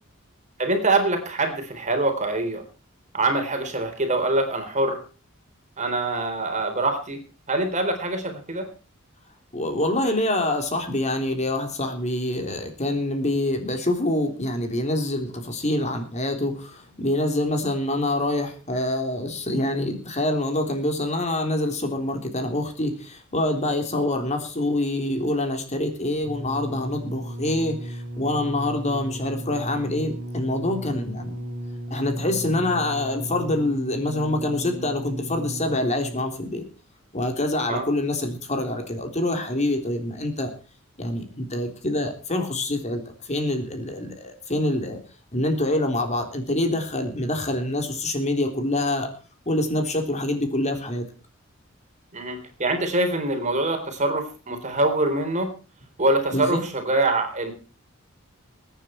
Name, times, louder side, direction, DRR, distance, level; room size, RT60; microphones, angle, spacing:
voice 1, 0.6-2.6 3.1-5.0 5.8-7.2 7.5-8.7 37.7-37.8 52.1-55.5 56.0-57.5, right 2 dB, 35° right, 6 dB, 3.8 m, -24 dB
voice 2, 9.5-31.3 31.9-36.6 37.1-40.5 41.0-45.0 45.3-49.1 49.5-51.1 56.3-56.6, left 1 dB, 35° left, 5 dB, 3.6 m, -26 dB
sound 1, 26.2-36.4 37.2-37.3, right 1 dB, 65° right, 2.9 m, -35 dB
22.5 x 10.0 x 4.5 m, 0.35 s
head